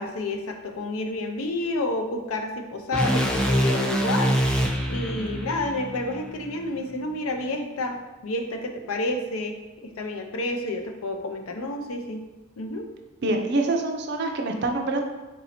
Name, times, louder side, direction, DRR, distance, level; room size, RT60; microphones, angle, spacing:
voice 1, 0.0-4.3 4.9-9.6 10.0-12.2 12.6-12.9, left 2 dB, 75° left, 5 dB, 0.5 m, -29 dB
sound 1, 2.9-7.1, equal, 5° left, 0.3 m, -25 dB
voice 2, 13.2-15.0, right 2 dB, 50° right, 3 dB, 0.5 m, -25 dB
4.0 x 2.7 x 4.2 m, 1.1 s
head